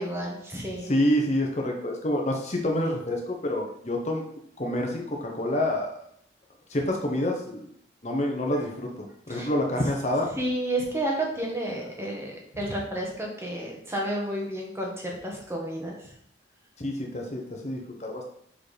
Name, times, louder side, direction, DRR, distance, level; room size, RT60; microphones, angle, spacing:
voice 1, 0.0-0.9 8.5-8.7 9.3-9.5 10.3-16.1, right 1 dB, 15° right, -1 dB, 1.4 m, -31 dB
voice 2, 0.8-4.2 4.6-5.9 6.7-7.7 8.0-10.3 16.8-18.3, left 1 dB, 35° left, 1 dB, 1.0 m, -27 dB
5.8 x 4.7 x 5.0 m, 0.67 s
head